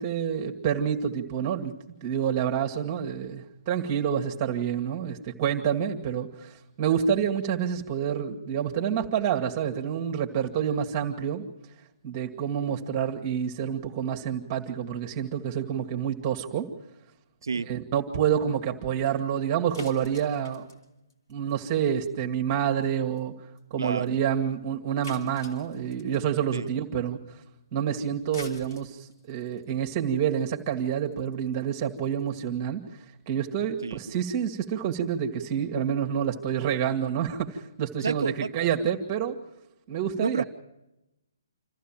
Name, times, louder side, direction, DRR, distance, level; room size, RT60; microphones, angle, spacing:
voice 1, 0.0-1.7 2.0-11.4 12.0-16.7 17.7-20.7 21.3-23.3 23.7-27.4 27.7-32.8 33.3-39.4 39.9-40.4, right 8 dB, 30° right, 1.9 m, -28 dB
sound 1, 19.7-22.0 22.2-22.5 22.8-22.9 23.2-23.3 23.6-23.7 24.1-24.2 25.0-26.3 28.1-32.4, left 2 dB, 65° left, 4.1 m, -47 dB
voice 2, 23.8-24.2 26.5-26.7 33.8-34.0 38.0-38.7 40.2-40.4, right 4 dB, 70° right, 0.7 m, -30 dB
27.0 x 14.5 x 7.5 m
figure-of-eight pair, 135°, 2 cm